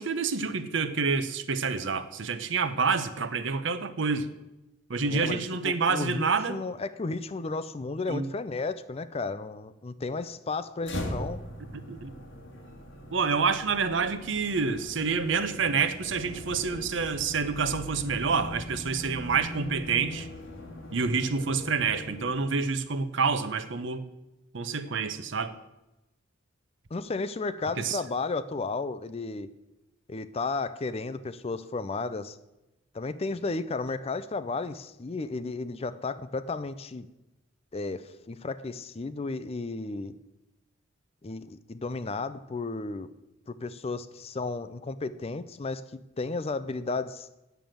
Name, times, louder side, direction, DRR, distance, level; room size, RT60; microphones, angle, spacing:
voice 1, 0.0-4.3 4.9-6.6 8.1-8.3 11.9-12.1 13.1-20.3 20.9-24.0 24.5-25.5 27.8-28.0, right 5 dB, 65° right, 11 dB, 0.8 m, -28 dB
voice 2, 5.1-11.4 26.9-29.5 30.1-32.4 32.9-37.1 37.7-40.2 41.2-43.1 43.5-47.3, left 3 dB, 30° left, 13 dB, 0.4 m, -33 dB
sound 1, 10.8-22.8, left 1 dB, 65° left, 1.9 m, -41 dB
9.2 x 7.0 x 7.7 m, 0.98 s
head